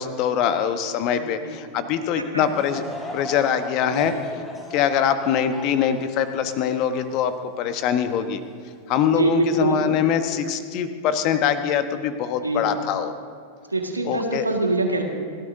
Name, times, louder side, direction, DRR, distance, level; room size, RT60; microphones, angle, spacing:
voice 1, 0.0-2.8 3.1-4.1 4.7-8.4 8.9-13.1 14.0-14.5, left 8 dB, 40° left, 10 dB, 1.0 m, -23 dB
Laughter / Crowd, 2.4-7.9 8.5-8.6 9.4-9.6, left 1 dB, 10° left, 3.4 m, -37 dB
voice 2, 9.2-9.8 12.4-12.7 13.7-15.0, right 3 dB, 80° right, 3 dB, 1.7 m, -24 dB
29.5 x 13.0 x 2.7 m, 2.3 s
figure-of-eight pair, 90°, 0 cm